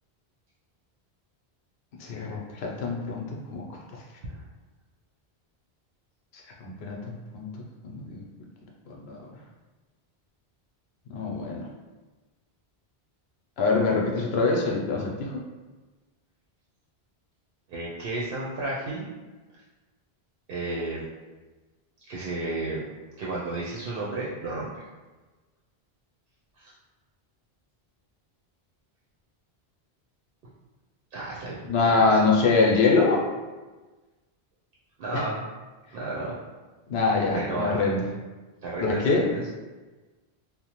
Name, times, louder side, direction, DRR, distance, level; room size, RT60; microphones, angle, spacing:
voice 1, 2.0-3.6 6.6-7.5 7.8-8.2 8.9-9.3 11.1-11.6 13.6-15.4 31.6-33.2 35.1-35.2 36.9-38.1 38.8-39.3, left 3 dB, 75° left, -1 dB, 0.8 m, -24 dB
voice 2, 17.7-19.1 19.5-19.6 20.5-21.0 22.1-22.8 23.2-24.8 26.6-26.7 31.1-32.2 35.0-35.5 35.9-36.3 37.3-37.8 38.6-39.4, right 2 dB, 65° right, -5 dB, 0.7 m, -32 dB
2.8 x 2.0 x 2.9 m, 1.2 s
omnidirectional pair, 1.1 m